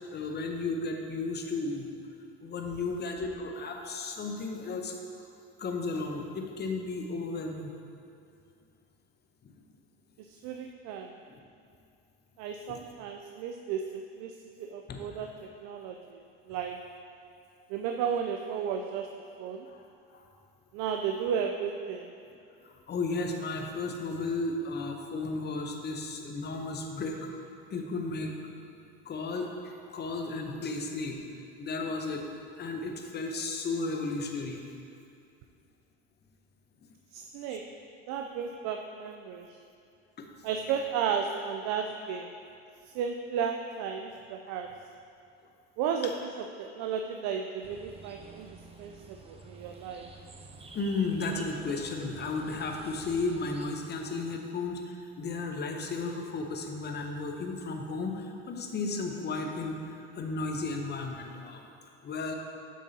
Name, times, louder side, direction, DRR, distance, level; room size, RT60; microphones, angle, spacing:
voice 1, 0.0-1.9 2.4-5.0 5.6-7.7 9.4-9.5 11.3-11.4 12.7-12.8 14.9-15.1 19.7-19.9 20.1-20.3 22.6-27.3 27.7-28.3 29.0-31.2 31.6-32.2 32.6-34.6 40.2-40.3 50.7-61.6 62.0-62.3, left 3 dB, 30° left, 3 dB, 0.8 m, -34 dB
voice 2, 10.3-11.1 12.4-16.2 16.5-16.9 17.7-19.7 20.7-22.1 37.1-37.7 38.1-39.5 40.4-42.3 42.9-44.7 45.8-46.1 46.6-50.1, right 7 dB, 55° right, 4 dB, 0.5 m, -34 dB
sound 1, 47.6-53.7, right 3 dB, 20° right, 0.6 m, -49 dB
8.0 x 6.2 x 2.8 m, 2.5 s
hypercardioid pair, 80°, 32 cm